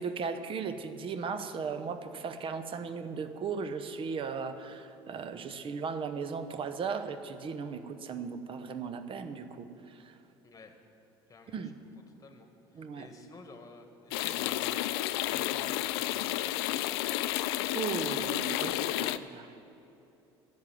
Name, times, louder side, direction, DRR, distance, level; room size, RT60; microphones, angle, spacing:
voice 1, 0.0-10.2 11.5-11.7 12.7-13.1 17.7-19.5, right 5 dB, 45° right, 9 dB, 1.0 m, -37 dB
voice 2, 11.3-11.6 12.2-16.8, left 3 dB, 25° left, 5 dB, 1.7 m, -52 dB
sound 1, 14.1-19.2, left 15 dB, 75° left, 0.4 m, -31 dB
11.0 x 7.4 x 9.2 m, 2.9 s
hypercardioid pair, 70°, 13 cm